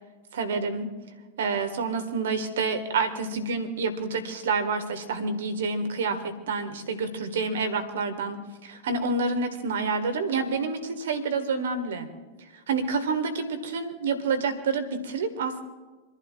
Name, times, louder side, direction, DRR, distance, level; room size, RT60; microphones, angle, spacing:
voice 1, 0.3-0.9 1.4-12.1 12.7-15.6, right 4 dB, 60° right, 8 dB, 1.8 m, -28 dB
28.5 x 11.5 x 2.5 m, 1.3 s
figure-of-eight pair, 90°, 0 cm